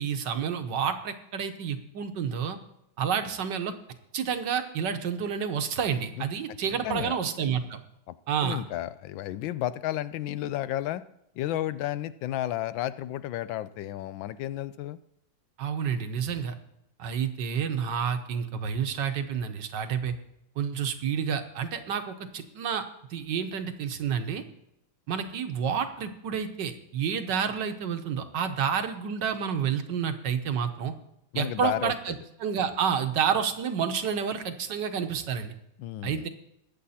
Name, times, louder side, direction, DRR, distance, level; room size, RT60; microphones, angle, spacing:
voice 1, 0.0-2.6 3.0-3.7 4.1-7.8 8.3-8.6 15.6-16.5 17.0-20.1 20.6-22.8 23.1-24.4 25.1-30.9 31.3-32.1 32.4-35.5 36.0-36.3, right 7 dB, 65° right, 8 dB, 1.6 m, -29 dB
voice 2, 6.2-6.6 6.8-7.2 8.1-8.2 8.4-11.0 11.3-15.0 31.3-32.2 35.8-36.3, left 13 dB, 80° left, 15 dB, 1.3 m, -32 dB
20.5 x 7.8 x 4.2 m, 0.81 s
omnidirectional pair, 2.1 m